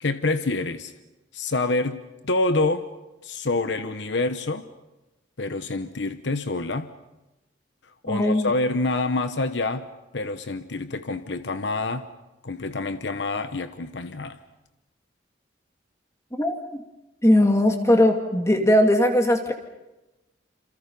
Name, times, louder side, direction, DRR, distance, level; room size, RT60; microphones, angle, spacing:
voice 1, 0.0-0.9 1.3-2.9 3.2-4.6 5.4-6.9 8.0-12.1 12.4-14.4, left 2 dB, 75° left, 1.0 m, -27 dB
voice 2, 8.1-8.5 16.3-16.5 17.2-19.5, left 1 dB, 15° left, 2.1 m, -19 dB
27.5 x 27.0 x 5.4 m
head